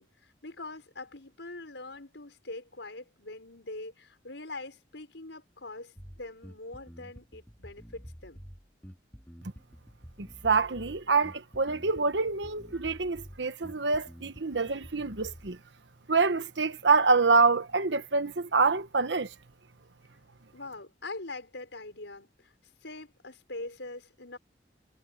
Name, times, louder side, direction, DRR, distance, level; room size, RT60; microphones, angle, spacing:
voice 1, 0.0-8.4 20.5-22.5 22.8-24.4, left 2 dB, 85° left, 5.3 m, -43 dB
Bass guitar, 6.0-15.5, equal, 10° left, 2.8 m, -49 dB
voice 2, 10.4-15.6 16.1-19.3, right 4 dB, 75° right, 1.2 m, -26 dB
head